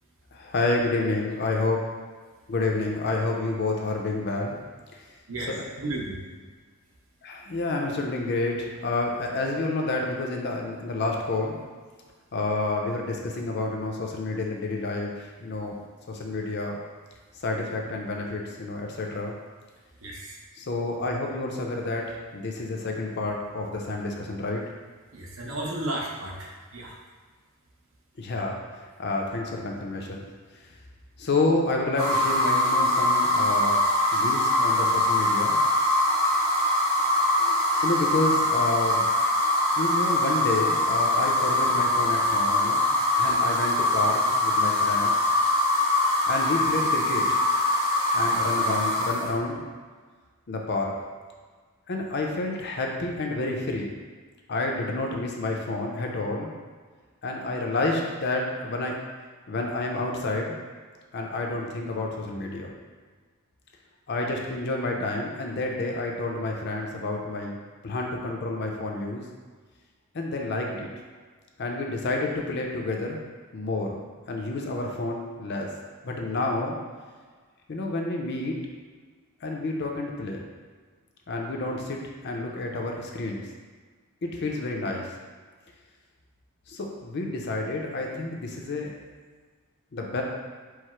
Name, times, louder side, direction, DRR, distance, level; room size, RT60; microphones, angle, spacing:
voice 1, 0.3-1.8 2.5-4.6 4.9-5.0 7.2-11.6 12.3-15.8 16.1-16.8 17.3-19.3 20.6-24.6 28.2-30.3 31.2-35.6 37.4-39.0 39.7-42.9 43.2-45.3 46.3-47.4 48.1-49.6 50.5-50.9 51.9-53.9 54.5-56.5 57.2-58.9 59.5-60.6 61.1-62.7 64.1-67.6 67.8-69.2 70.1-70.9 71.6-73.2 73.5-75.7 76.0-76.8 77.7-78.6 79.4-80.4 81.3-83.4 84.2-85.1 86.7-88.9 89.9-90.2, left 2 dB, 50° left, 0 dB, 0.5 m, -29 dB
voice 2, 5.8-6.1 20.0-20.4 25.1-27.0, right 1 dB, 65° right, -2 dB, 0.8 m, -33 dB
sound 1, 32.0-49.3, left 1 dB, 85° right, 1.1 m, -23 dB
4.7 x 2.0 x 4.3 m, 1.5 s
head